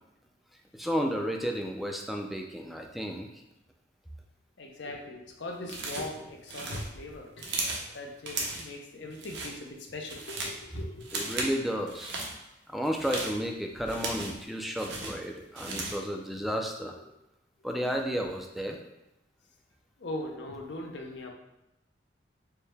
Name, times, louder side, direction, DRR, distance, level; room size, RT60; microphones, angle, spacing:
voice 1, 0.8-3.3 11.1-12.1 12.7-16.9 17.6-18.8, equal, ahead, 2 dB, 0.3 m, -32 dB
voice 2, 4.6-11.2 18.1-18.2 20.0-21.3, left 2 dB, 70° left, 2 dB, 0.6 m, -40 dB
sound 1, 5.7-6.2 6.5-7.9 8.3-8.7 9.1-9.5 9.9-10.6 11.0-11.6 11.9-12.3 12.8-14.4 14.8-16.1, right 3 dB, 70° right, 0.7 m, -36 dB
4.5 x 2.1 x 3.4 m, 0.92 s
head